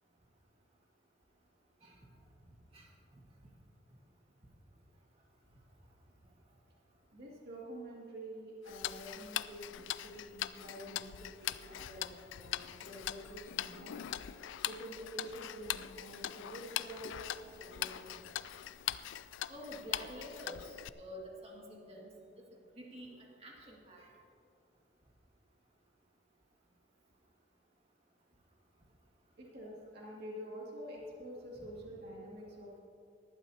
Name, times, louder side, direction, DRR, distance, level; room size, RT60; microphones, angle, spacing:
voice 1, 7.1-14.1 14.7-18.2 29.4-32.8, equal, 55° right, -4 dB, 2.3 m, -48 dB
Tick-tock, 8.7-20.9, left 12 dB, 75° left, 0.4 m, -41 dB
voice 2, 19.5-22.1 22.5-23.1 23.4-24.1 31.6-31.7, equal, 30° right, -2 dB, 2.0 m, -48 dB
19.0 x 12.0 x 2.8 m, 2.5 s
head